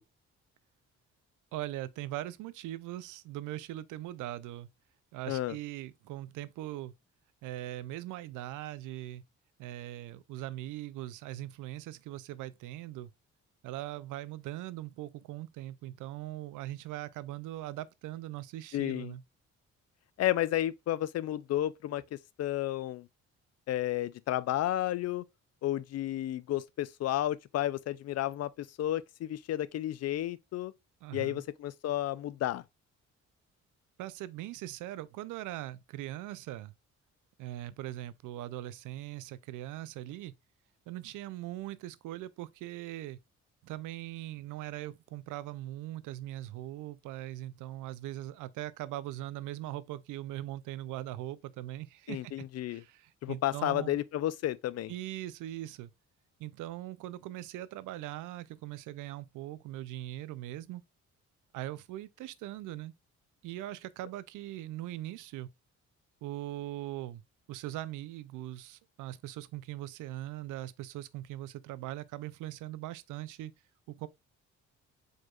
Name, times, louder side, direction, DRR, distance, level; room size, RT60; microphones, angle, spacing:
voice 1, 1.5-4.7 5.1-6.9 7.4-9.2 9.6-13.1 13.6-19.2 31.0-31.4 34.0-36.7 37.4-40.3 40.9-43.2 43.6-54.0 54.9-55.9 56.4-60.8 61.5-62.9 63.4-65.5 66.2-67.2 67.5-73.5 73.9-74.1, right 14 dB, 85° right, 0.5 m, -41 dB
voice 2, 18.7-19.1 20.2-23.1 23.7-25.2 25.6-30.7 31.1-32.6 52.1-52.8 53.2-54.9, left 13 dB, 55° left, 0.4 m, -32 dB
4.7 x 4.4 x 2.3 m
cardioid pair, 90°, 30 cm